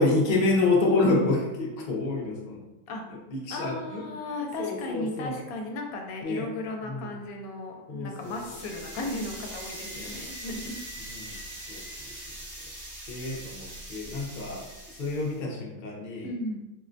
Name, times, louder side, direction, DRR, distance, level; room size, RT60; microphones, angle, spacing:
voice 1, 0.0-2.6 3.3-4.0 4.6-5.3 6.2-6.5 6.8-7.1 7.9-8.3 10.0-10.1 11.1-11.4 11.7-11.8 13.1-14.7 15.0-16.3, left 2 dB, 50° left, -2 dB, 0.6 m, -27 dB
voice 2, 3.5-10.7 11.4-11.5 16.2-16.6, left 2 dB, 80° left, 2 dB, 1.0 m, -35 dB
sound 1, 8.2-15.4, right 1 dB, 75° right, 1.5 m, -42 dB
4.3 x 2.1 x 2.5 m, 0.99 s
omnidirectional pair, 1.5 m